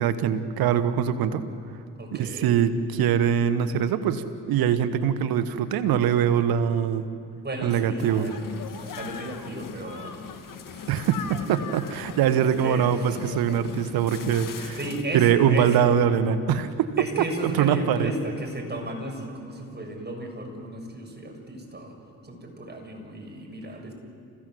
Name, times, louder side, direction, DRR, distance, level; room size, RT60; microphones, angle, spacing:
voice 1, 0.0-1.4 2.1-7.1 7.6-8.3 10.9-14.8 15.1-16.9 17.4-18.1, right 8 dB, 80° right, 11 dB, 1.3 m, -23 dB
voice 2, 1.9-2.5 7.3-8.4 8.7-10.9 12.6-13.2 14.8-15.9 17.0-21.9 22.2-23.9, right 1 dB, 30° right, 2 dB, 6.8 m, -34 dB
sound 1, 8.0-15.0, left 7 dB, 60° left, 1.9 m, -39 dB
30.0 x 16.0 x 7.8 m, 2.4 s
supercardioid pair, 50°, 36 cm